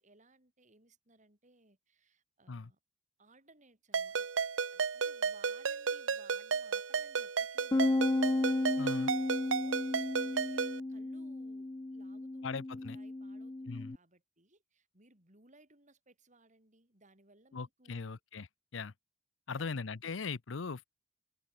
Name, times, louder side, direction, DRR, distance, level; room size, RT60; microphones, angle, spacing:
voice 1, 0.0-2.8 3.2-4.3 4.7-8.2 9.4-18.2 19.5-19.8, right 2 dB, 40° right, 6.4 m, -64 dB
Ringtone, 3.9-10.8, right 5 dB, 75° right, 0.8 m, -34 dB
Bass guitar, 7.7-14.0, left 2 dB, 20° left, 0.4 m, -34 dB
voice 2, 8.8-9.1 12.4-13.0 13.7-14.0 17.5-18.5 18.7-18.9 19.5-20.8, left 4 dB, 70° left, 0.7 m, -39 dB
head